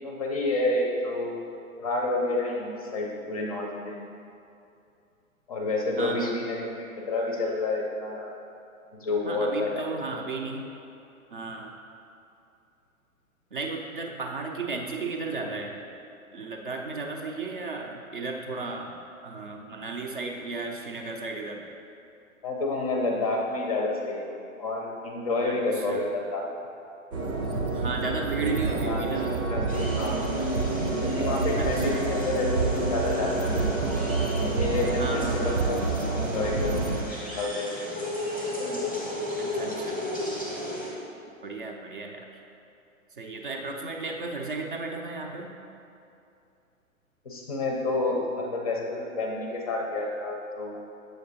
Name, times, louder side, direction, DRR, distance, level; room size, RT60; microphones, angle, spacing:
voice 1, 0.0-1.3 1.8-4.0 5.5-8.3 8.9-9.8 10.2-10.3 22.4-24.3 24.6-26.5 28.7-30.3 31.0-33.8 34.4-36.9 37.4-38.1 38.6-38.8 39.5-40.0 47.2-50.8, left 2 dB, 25° left, 0 dB, 0.5 m, -29 dB
voice 2, 6.0-6.4 9.2-10.7 11.3-11.7 13.5-15.8 16.3-18.9 19.2-21.6 25.5-26.0 27.7-29.4 31.6-32.0 35.0-35.6 39.4-40.0 41.4-42.3 43.2-45.5, right 3 dB, 40° right, 2 dB, 0.5 m, -34 dB
sound 1, 27.1-37.0, right 3 dB, 80° right, 0.8 m, -27 dB
sound 2, 29.7-40.9, left 1 dB, 5° right, 0.8 m, -36 dB
7.7 x 6.4 x 2.7 m, 2.6 s
figure-of-eight pair, 115°, 42 cm